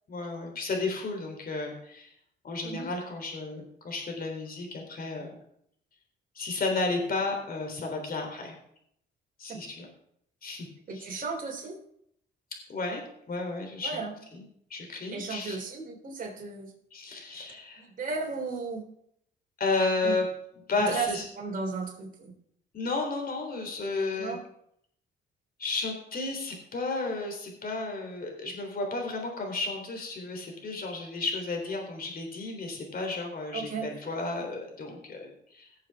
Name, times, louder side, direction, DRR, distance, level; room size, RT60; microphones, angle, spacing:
voice 1, 0.1-2.1 2.4-5.4 6.4-8.6 9.4-9.9 10.4-10.7 10.9-11.0 12.7-13.0 13.3-14.0 14.3-14.4 14.7-15.6 16.9-17.8 19.6-20.3 20.7-21.2 22.7-24.4 25.6-35.7, left 3 dB, 45° left, 2 dB, 3.6 m, -32 dB
voice 2, 10.9-11.8 13.8-14.1 15.1-16.7 17.8-18.9 20.0-20.1 20.8-21.1 21.4-22.3 24.2-24.4 33.5-33.9, right 4 dB, 45° right, 0 dB, 3.7 m, -34 dB
18.0 x 7.1 x 3.6 m, 0.72 s
cardioid pair, 90°, 20 cm